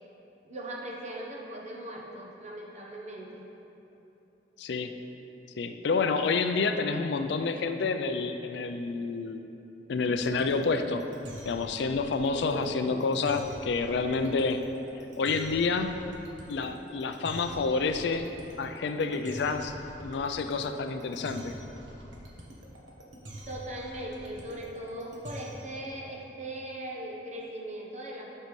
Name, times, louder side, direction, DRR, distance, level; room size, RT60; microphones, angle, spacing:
voice 1, 0.4-3.5 12.2-13.1 23.5-28.4, right 1 dB, 40° right, -2 dB, 0.9 m, -39 dB
voice 2, 4.6-4.9 5.6-9.4 9.9-11.0 11.5-14.6 15.2-16.0 16.5-18.3 18.6-19.8 20.0-21.5, left 4 dB, 65° left, 7 dB, 0.4 m, -29 dB
sound 1, 10.1-25.8, right 1 dB, 80° right, 1.2 m, -45 dB
11.5 x 5.4 x 3.2 m, 3.0 s
head